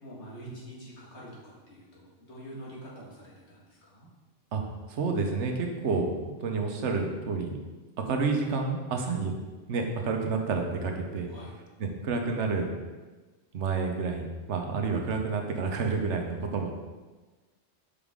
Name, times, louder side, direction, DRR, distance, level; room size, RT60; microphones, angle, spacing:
voice 1, 0.0-4.1 8.9-9.1 11.3-11.5, equal, 80° left, -5 dB, 2.0 m, -46 dB
voice 2, 4.9-7.6 8.1-9.3 9.7-11.3 11.8-12.8 13.5-16.7, right 4 dB, 85° right, 3 dB, 1.2 m, -29 dB
6.7 x 4.9 x 3.6 m, 1.3 s
omnidirectional pair, 1.2 m